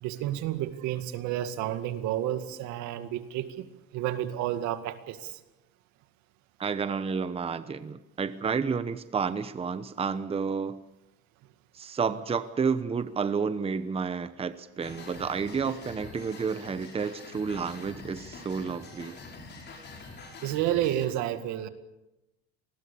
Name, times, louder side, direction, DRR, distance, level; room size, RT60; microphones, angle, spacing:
voice 1, 0.0-5.4 20.4-21.7, right 12 dB, 70° right, 10 dB, 2.1 m, -31 dB
voice 2, 6.6-10.8 11.7-19.2, right 5 dB, 20° right, 12 dB, 0.9 m, -30 dB
sound 1, 14.8-21.1, left 3 dB, 35° left, 6.6 m, -45 dB
27.0 x 20.5 x 7.0 m, 0.95 s
cardioid pair, 125°, 30 cm